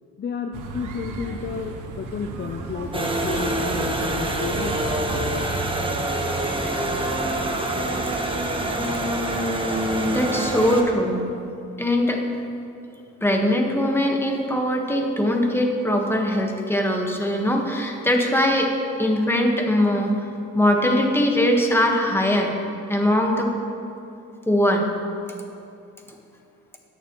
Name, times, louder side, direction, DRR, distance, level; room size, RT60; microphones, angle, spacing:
voice 1, 0.2-5.4, left 5 dB, 35° left, 5 dB, 0.5 m, -32 dB
sound 1, 0.5-5.7, right 3 dB, 85° right, 1.0 m, -35 dB
sound 2, 2.9-10.8, right 1 dB, 15° right, 1.2 m, -25 dB
voice 2, 9.7-11.3 11.8-12.2 13.2-18.7 19.0-20.2 20.5-22.6 22.9-23.5 24.5-24.9, left 1 dB, 10° left, 1 dB, 1.4 m, -21 dB
18.5 x 6.6 x 3.1 m, 2.6 s
cardioid pair, 90°, 30 cm